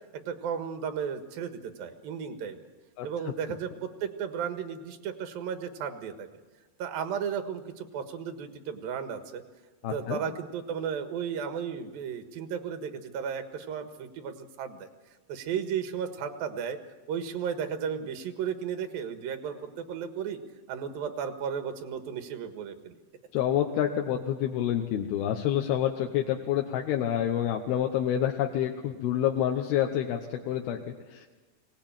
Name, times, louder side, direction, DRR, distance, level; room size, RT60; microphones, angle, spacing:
voice 1, 0.1-2.7 3.0-6.3 6.8-9.4 9.9-14.9 15.3-16.8 17.1-20.4 20.7-23.0, right 7 dB, 70° right, 8 dB, 3.2 m, -34 dB
voice 2, 9.8-10.2 23.3-31.3, left 10 dB, 90° left, 2 dB, 3.1 m, -28 dB
23.0 x 18.0 x 8.9 m, 1.3 s
omnidirectional pair, 4.3 m